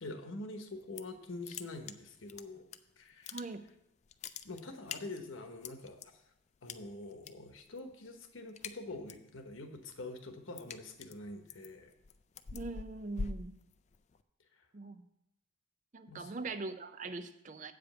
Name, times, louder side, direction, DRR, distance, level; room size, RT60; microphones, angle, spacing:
voice 1, 0.0-2.7 3.0-3.4 4.4-6.0 6.6-11.9 16.1-16.3, left 2 dB, 85° left, 6 dB, 1.1 m, -45 dB
sound 1, 0.7-1.2 1.4-2.8 3.1-3.8 4.0-6.1 6.7-7.3 7.6-7.9 8.2-9.3 9.7-14.2, left 5 dB, 35° left, 0.3 m, -44 dB
voice 2, 3.3-3.6 12.5-13.5 14.7-15.0 15.9-17.7, right 3 dB, 40° right, 11 dB, 0.5 m, -41 dB
8.3 x 5.1 x 6.8 m, 0.84 s
head